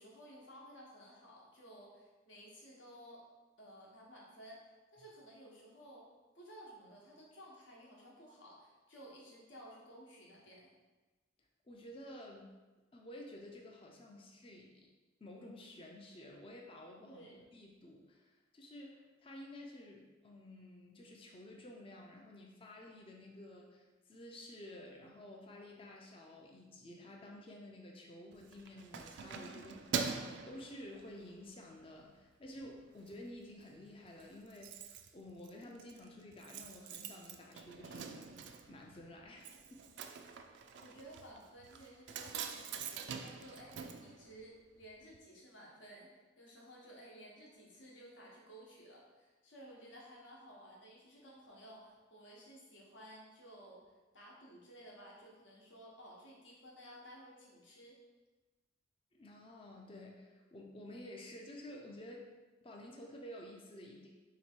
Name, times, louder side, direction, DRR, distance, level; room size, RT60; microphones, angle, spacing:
voice 1, 0.0-3.2 3.6-4.6 4.9-6.1 6.3-10.7 17.0-17.4 40.8-46.1 46.4-53.8 54.1-58.0, equal, 70° left, -3 dB, 1.0 m, -55 dB
voice 2, 11.6-12.5 12.9-14.9 15.2-30.1 30.5-39.8 59.1-62.3 62.6-64.1, left 1 dB, 30° left, 0 dB, 0.4 m, -52 dB
Keys jangling, 28.3-31.4 31.9-32.1 32.5-33.2 33.4-33.5 33.8-33.9 34.0-44.9 45.1-45.2, right 6 dB, 60° right, 0.3 m, -44 dB
3.2 x 3.0 x 4.4 m, 1.2 s
head